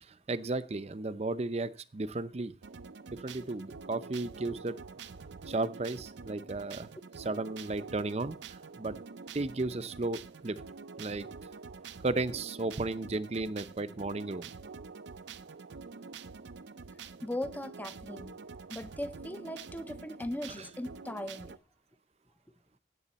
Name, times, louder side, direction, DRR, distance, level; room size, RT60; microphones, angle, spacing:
voice 1, 0.1-2.5 3.1-4.8 5.5-6.9 7.2-9.0 9.3-10.6 11.0-11.3 12.0-14.5 20.6-20.7, right 2 dB, 35° right, 0.6 m, -34 dB
sound 1, 2.6-21.6, right 4 dB, 85° right, 0.6 m, -47 dB
voice 2, 17.2-18.4 18.7-21.6, left 1 dB, 10° left, 0.6 m, -38 dB
16.5 x 7.7 x 4.1 m
head